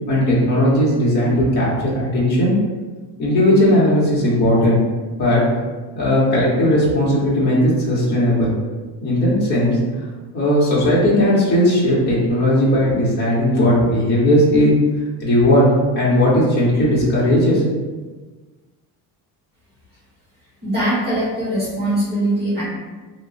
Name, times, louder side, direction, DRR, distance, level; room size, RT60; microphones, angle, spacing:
voice 1, 0.1-2.5 3.2-4.8 5.2-5.4 5.9-8.5 9.0-9.8 10.3-14.7 15.2-15.7 15.9-17.6, left 1 dB, 25° left, -7 dB, 1.0 m, -17 dB
voice 2, 20.6-22.6, right 1 dB, 25° right, -12 dB, 1.1 m, -21 dB
2.9 x 2.2 x 3.9 m, 1.3 s
cardioid pair, 160°, 39 cm